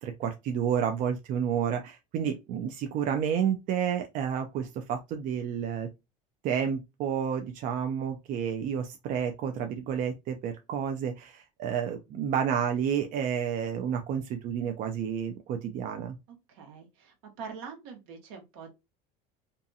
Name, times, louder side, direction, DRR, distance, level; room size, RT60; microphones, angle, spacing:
voice 1, 0.0-5.9 6.4-16.2, right 8 dB, 50° right, 0.4 m, -30 dB
voice 2, 16.5-18.7, right 6 dB, 75° right, 1.1 m, -44 dB
2.6 x 2.4 x 2.6 m
supercardioid pair, 115°, 17 cm